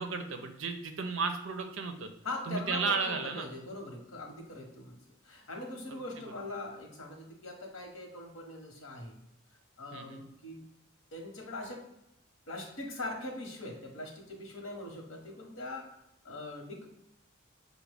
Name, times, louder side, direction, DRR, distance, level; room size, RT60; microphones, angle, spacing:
voice 1, 0.0-2.1 2.5-3.5 5.9-6.3 9.9-10.2, right 4 dB, 65° right, 6 dB, 0.6 m, -34 dB
voice 2, 2.2-5.0 5.2-9.2 9.8-10.6 11.1-11.8 12.5-15.9 16.2-16.9, left 2 dB, 90° left, 1 dB, 1.1 m, -41 dB
5.8 x 2.2 x 3.4 m, 0.86 s
head